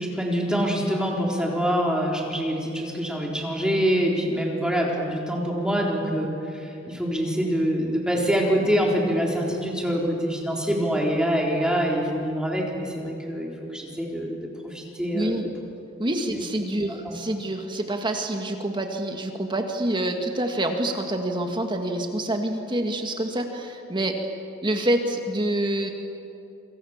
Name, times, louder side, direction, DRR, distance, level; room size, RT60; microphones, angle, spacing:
voice 1, 0.0-15.5 16.3-16.4 16.9-17.2, equal, 5° right, -1 dB, 4.1 m, -25 dB
voice 2, 15.1-15.4 16.0-24.2 24.6-25.9, right 1 dB, 25° right, 4 dB, 1.9 m, -27 dB
28.0 x 26.0 x 7.4 m, 2.7 s
head